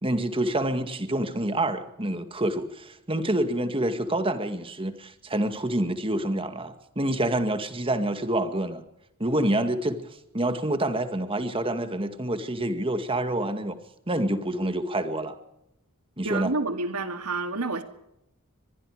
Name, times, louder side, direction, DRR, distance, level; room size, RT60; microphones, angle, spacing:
voice 1, 0.0-8.8 9.2-10.0 10.3-13.8 14.1-15.3 16.2-16.5, right 1 dB, 25° right, 9 dB, 2.0 m, -27 dB
voice 2, 16.2-17.8, right 3 dB, 90° right, 7 dB, 2.6 m, -29 dB
23.5 x 22.0 x 5.0 m, 0.85 s
head